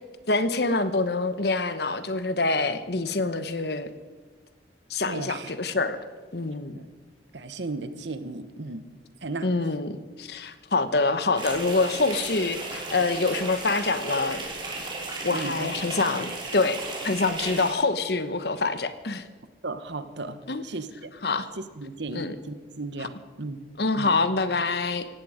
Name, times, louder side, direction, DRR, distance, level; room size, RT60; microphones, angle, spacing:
voice 1, 0.3-3.9 4.9-6.0 6.3-6.8 9.4-14.4 15.2-19.2 20.5-20.7 21.2-21.5 22.1-22.3 23.8-25.1, left 3 dB, 60° left, 12 dB, 1.0 m, -26 dB
voice 2, 5.1-5.5 6.7-6.9 7.3-8.8 9.2-9.5 15.3-15.7 16.1-16.3 19.6-21.1 21.6-23.6 24.0-24.1, right 3 dB, 70° right, 11 dB, 1.1 m, -35 dB
sound 1, 11.3-17.7, right 2 dB, 25° right, 3.3 m, -35 dB
17.5 x 16.0 x 5.1 m, 1.4 s
head